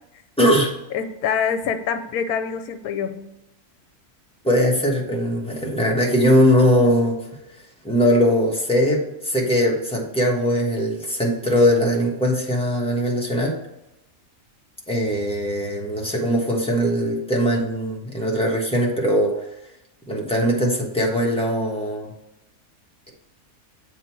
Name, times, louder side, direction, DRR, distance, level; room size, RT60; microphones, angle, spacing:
voice 1, 0.4-0.7 4.4-7.2 7.8-13.6 14.9-19.4 20.1-22.1, equal, 5° left, -2 dB, 1.1 m, -20 dB
voice 2, 0.9-3.3, left 7 dB, 80° left, 8 dB, 1.1 m, -25 dB
7.6 x 3.7 x 4.5 m, 0.89 s
omnidirectional pair, 1.6 m